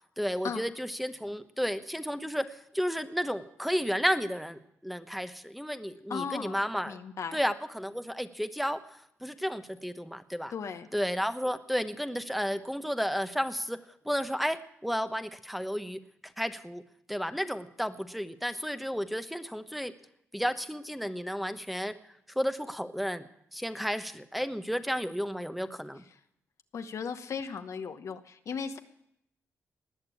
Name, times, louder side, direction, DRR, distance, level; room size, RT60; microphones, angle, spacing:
voice 1, 0.2-7.0 7.3-8.8 9.2-10.5 10.9-13.8 14.0-16.0 16.4-16.8 17.1-19.9 20.3-22.0 22.4-26.0, equal, ahead, 8 dB, 1.0 m, -32 dB
voice 2, 6.1-7.4 10.5-10.9 26.1-26.2 26.7-28.8, left 6 dB, 65° left, 8 dB, 1.1 m, -37 dB
19.0 x 6.7 x 8.6 m, 0.75 s
supercardioid pair, 55°, 6 cm